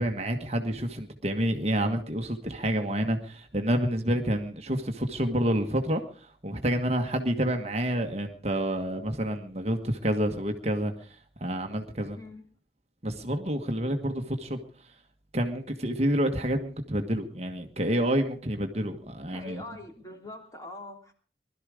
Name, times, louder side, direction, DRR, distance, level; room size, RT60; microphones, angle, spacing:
voice 1, 0.0-12.2 13.0-14.6 15.3-19.6, right 1 dB, 35° right, 4 dB, 1.5 m, -28 dB
voice 2, 19.3-21.1, left 2 dB, 20° left, 3 dB, 3.2 m, -43 dB
21.0 x 12.5 x 5.0 m, 0.40 s
head